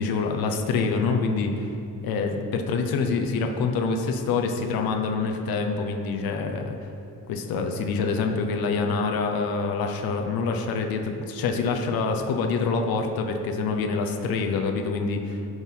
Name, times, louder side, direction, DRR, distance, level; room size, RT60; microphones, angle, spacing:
voice 1, 0.0-1.7 2.0-6.8 7.3-15.4, left 4 dB, 85° left, 3 dB, 0.8 m, -26 dB
11.0 x 4.0 x 5.5 m, 2.7 s
cardioid pair, 70°, 35 cm